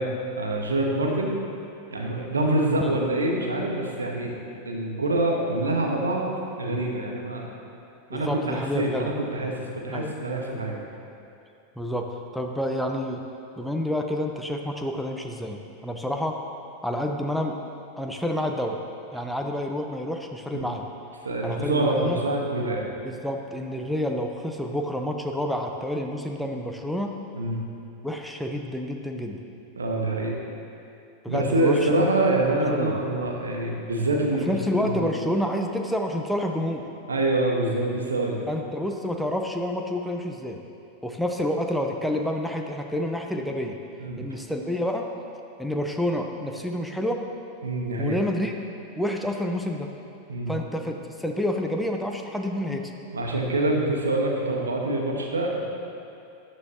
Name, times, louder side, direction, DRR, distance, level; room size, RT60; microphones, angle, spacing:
voice 1, 0.0-1.3 1.9-4.4 4.6-6.3 6.6-7.5 8.1-10.8 20.5-20.7 21.2-22.9 27.3-27.6 29.7-30.4 31.3-35.1 37.1-38.4 44.0-44.2 47.6-48.2 50.3-50.5 53.1-55.6, right 2 dB, 80° right, 0 dB, 1.4 m, -25 dB
voice 2, 8.1-9.1 9.9-10.1 11.8-13.2 13.6-16.4 16.8-17.6 18.0-18.8 19.1-20.9 21.4-22.2 23.0-27.1 28.0-29.5 31.2-32.1 32.7-33.0 34.5-36.9 38.5-40.6 41.0-43.8 44.2-45.1 45.6-47.3 48.0-48.5 49.0-49.9 50.5-52.9, left 1 dB, ahead, 2 dB, 0.8 m, -29 dB
13.0 x 9.7 x 2.9 m, 2.7 s
figure-of-eight pair, 90°, 0 cm